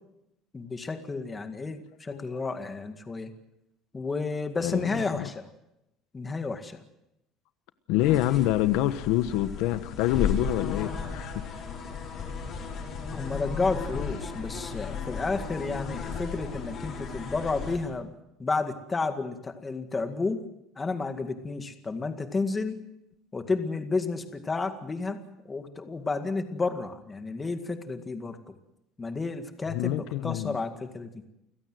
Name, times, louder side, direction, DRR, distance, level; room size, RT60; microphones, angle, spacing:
voice 1, 0.5-3.3 3.9-5.5 6.1-6.8 13.1-18.1 18.4-20.4 20.8-22.8 23.3-25.2 25.5-28.4 29.0-30.0 30.2-31.2, left 3 dB, 15° left, 7 dB, 2.0 m, -31 dB
voice 2, 4.6-5.3 7.9-11.5 12.7-12.8 29.7-30.6, left 14 dB, 70° left, 11 dB, 1.2 m, -27 dB
sound 1, 8.0-17.8, left 6 dB, 35° left, 5.9 m, -35 dB
29.5 x 16.5 x 7.8 m, 0.86 s
cardioid pair, 155°, 0 cm